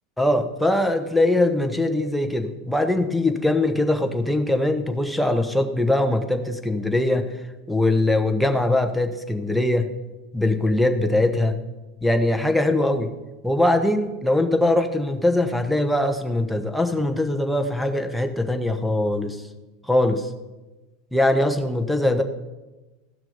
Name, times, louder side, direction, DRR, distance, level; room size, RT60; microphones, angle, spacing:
voice 1, 0.2-7.4 7.7-9.9 10.3-11.6 12.0-13.1 13.4-19.4 19.9-20.3 21.1-22.2, left 1 dB, ahead, 5 dB, 1.1 m, -22 dB
14.5 x 6.1 x 5.5 m, 1.1 s
figure-of-eight pair, 85°, 0 cm